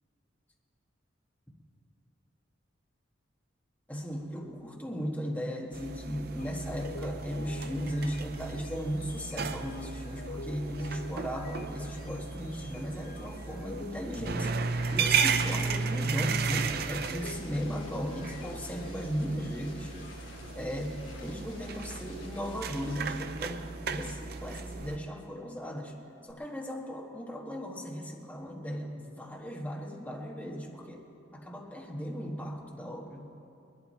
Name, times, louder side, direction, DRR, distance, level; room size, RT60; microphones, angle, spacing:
voice 1, 3.9-19.9 20.5-25.9 26.2-31.1 31.3-33.3, equal, 10° left, -1 dB, 1.4 m, -36 dB
sound 1, 5.7-25.0, right 5 dB, 55° right, 0.5 m, -35 dB
sound 2, 6.4-23.6 24.0-24.3 26.3-26.4, left 4 dB, 45° left, 0.4 m, -50 dB
sound 3, 7.5-7.7 8.0-12.4 12.6-23.9 24.2-24.8, left 3 dB, 90° left, 1.3 m, -53 dB
21.0 x 11.5 x 4.4 m, 2.6 s
head